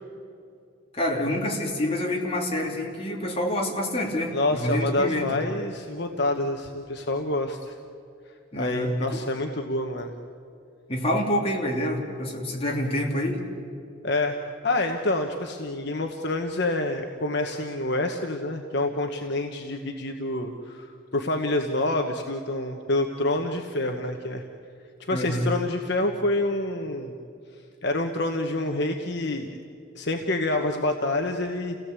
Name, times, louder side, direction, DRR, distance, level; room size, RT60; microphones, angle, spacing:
voice 1, 0.9-5.3 8.5-9.2 10.9-13.4 25.1-25.5, left 1 dB, 30° left, -1 dB, 3.2 m, -27 dB
voice 2, 4.3-7.7 8.6-10.1 14.0-14.4 14.6-24.4 25.1-27.1 27.8-29.6 29.9-31.8, left 2 dB, 55° left, 4 dB, 1.2 m, -27 dB
29.5 x 17.0 x 8.3 m, 2.6 s
head